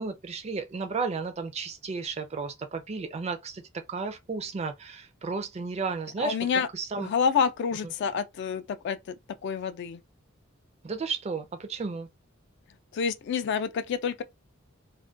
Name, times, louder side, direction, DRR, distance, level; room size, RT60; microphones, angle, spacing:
voice 1, 0.0-3.6 3.9-6.4 6.7-7.1 10.8-12.1, right 4 dB, 30° right, 0.4 m, -33 dB
voice 2, 6.2-6.7 7.0-9.2 9.4-10.0 12.9-14.2, left 6 dB, 55° left, 0.3 m, -28 dB
2.3 x 2.1 x 2.5 m
head